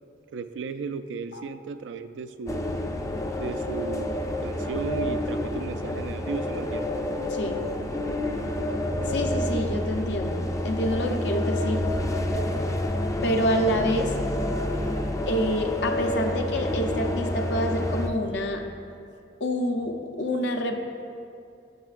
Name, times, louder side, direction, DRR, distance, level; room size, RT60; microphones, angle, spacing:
voice 1, 0.3-2.6 3.4-6.9, right 4 dB, 85° right, 11 dB, 0.3 m, -35 dB
sound 1, 2.5-18.1, left 1 dB, 20° left, 0.4 m, -28 dB
voice 2, 7.3-7.6 9.1-11.9 13.2-14.1 15.3-18.6 19.4-20.8, equal, 70° left, 4 dB, 0.6 m, -27 dB
12.0 x 7.2 x 2.5 m, 2.5 s
head